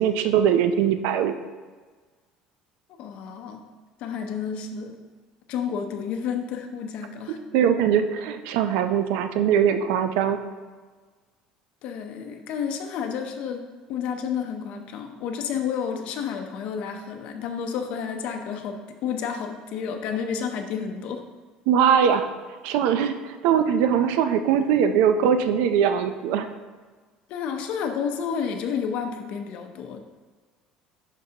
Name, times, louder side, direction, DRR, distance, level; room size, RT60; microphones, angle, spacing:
voice 1, 0.0-1.4 7.5-10.4 21.7-22.3 22.6-26.5, right 8 dB, 80° right, 9 dB, 0.5 m, -21 dB
voice 2, 3.0-3.7 4.0-5.0 5.5-7.4 11.8-21.2 27.3-30.0, left 7 dB, 55° left, 4 dB, 0.6 m, -30 dB
11.0 x 4.6 x 2.9 m, 1.4 s
cardioid pair, 165°, 2 cm